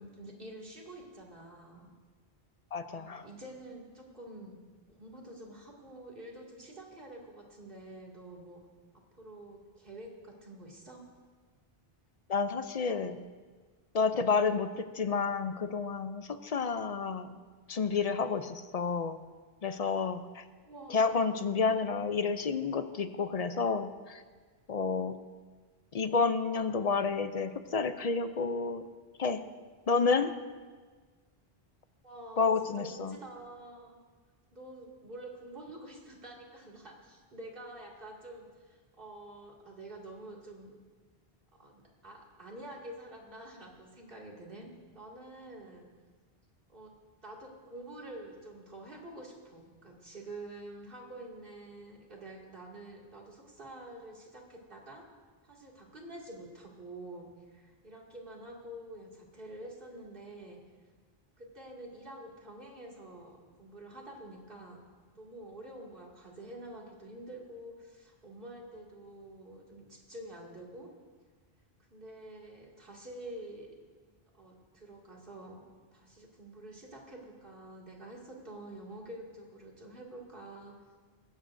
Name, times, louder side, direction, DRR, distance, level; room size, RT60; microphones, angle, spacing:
voice 1, 0.0-1.9 2.9-4.6 4.9-8.6 8.9-11.1 20.6-21.1 32.0-34.0 34.5-40.7 41.6-45.9 46.7-47.0 47.2-55.0 55.4-60.6 61.4-64.8 65.1-70.9 71.9-73.7 74.3-75.7 75.9-80.8, right 1 dB, 60° right, -2 dB, 2.6 m, -48 dB
voice 2, 2.7-3.3 12.3-13.2 13.9-17.4 17.7-19.2 19.6-20.4 20.9-24.2 24.7-25.2 25.9-28.8 29.2-29.4 29.9-30.3 32.4-33.2, left 5 dB, 45° left, 10 dB, 0.6 m, -30 dB
20.5 x 16.5 x 2.6 m, 1.4 s
omnidirectional pair, 1.0 m